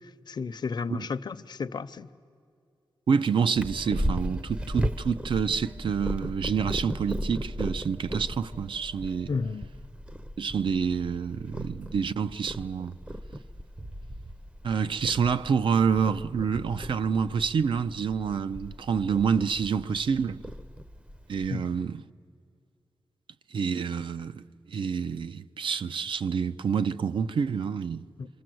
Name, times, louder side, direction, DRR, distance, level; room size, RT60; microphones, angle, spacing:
voice 1, 0.3-2.1 9.3-9.7 21.5-21.6 28.2-28.3, left 4 dB, 55° left, 0.6 m, -32 dB
voice 2, 3.1-9.3 10.4-13.0 14.6-20.4 21.3-22.0 23.5-24.4 24.7-28.1, right 6 dB, 75° right, 0.5 m, -27 dB
Purr, 3.6-21.5, equal, 15° right, 0.6 m, -36 dB
26.5 x 25.5 x 7.7 m
wide cardioid pair, 145°, 9 cm